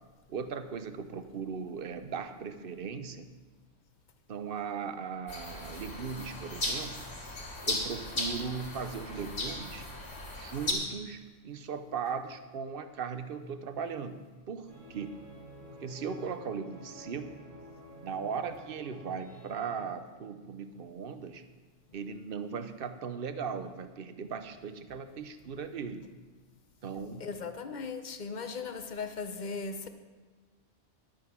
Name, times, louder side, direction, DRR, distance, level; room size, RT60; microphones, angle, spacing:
voice 1, 0.3-3.3 4.3-7.1 7.6-9.9 10.4-15.1 15.7-17.3 18.0-21.4 21.9-26.1 26.8-27.3, right 6 dB, 55° right, 10 dB, 0.9 m, -38 dB
sound 1, 5.3-10.7, left 2 dB, 80° left, 2.7 m, -36 dB
sound 2, 14.7-19.8, right 1 dB, 90° right, 2.7 m, -50 dB
voice 2, 27.2-29.9, left 4 dB, 40° left, 8 dB, 0.9 m, -38 dB
11.5 x 8.7 x 6.1 m, 1.4 s
omnidirectional pair, 1.2 m